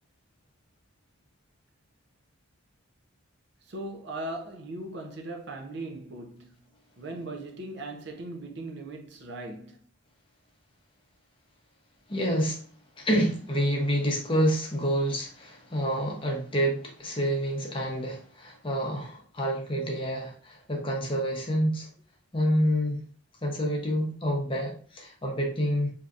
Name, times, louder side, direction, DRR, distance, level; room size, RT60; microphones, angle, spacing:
voice 1, 3.7-6.6 7.0-9.8, right 2 dB, 55° right, 0.6 m, -38 dB
voice 2, 12.1-12.6 13.0-21.9 22.3-23.0 23.4-25.9, equal, 25° left, 0.7 m, -28 dB
3.4 x 2.7 x 2.4 m
head